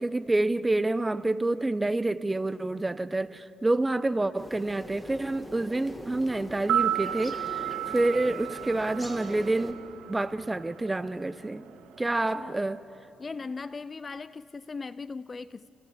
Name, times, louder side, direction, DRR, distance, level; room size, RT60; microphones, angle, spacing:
voice 1, 0.0-9.8 10.1-11.7 12.0-12.8, right 2 dB, 15° right, 0.7 m, -28 dB
sound 1, 4.4-9.7, equal, 5° left, 2.2 m, -42 dB
sound 2, 5.8-13.1, right 4 dB, 55° right, 6.9 m, -55 dB
sound 3, 6.5-10.7 11.0-11.1, right 11 dB, 90° right, 0.7 m, -32 dB
voice 2, 12.1-12.6 13.2-15.7, left 4 dB, 30° left, 0.5 m, -39 dB
29.5 x 29.0 x 5.0 m
cardioid pair, 90°, 0 cm